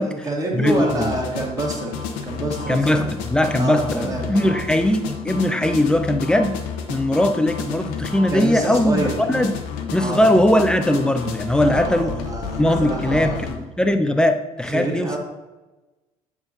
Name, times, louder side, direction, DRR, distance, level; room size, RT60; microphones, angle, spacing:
voice 1, 0.0-1.9 2.2-3.0 3.6-4.5 8.3-9.2 10.0-10.2 11.6-13.4 14.6-15.2, right 2 dB, 20° right, -1 dB, 1.7 m, -27 dB
voice 2, 0.5-1.1 2.7-6.5 6.9-9.5 9.9-12.2 12.6-15.2, left 1 dB, 5° left, 8 dB, 0.6 m, -20 dB
sound 1, 0.7-13.6, left 5 dB, 60° left, 0.8 m, -31 dB
8.7 x 5.8 x 2.6 m, 1.1 s
figure-of-eight pair, 55°, 19 cm